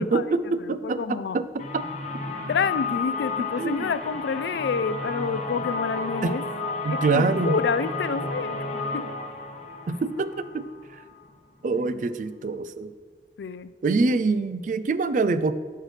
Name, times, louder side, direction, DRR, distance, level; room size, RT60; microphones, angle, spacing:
voice 1, 0.0-1.8 3.6-3.9 6.2-6.4 6.8-7.6 9.9-10.7 11.6-12.9 13.8-15.5, right 3 dB, 45° right, 13 dB, 0.3 m, -25 dB
voice 2, 0.8-1.4 2.5-6.4 6.9-8.5 8.9-9.0 11.8-12.0 13.4-13.7, left 5 dB, 75° left, 15 dB, 0.3 m, -28 dB
sound 1, 1.6-11.3, left 3 dB, 40° left, 0.8 m, -32 dB
10.5 x 6.6 x 3.3 m, 1.5 s
head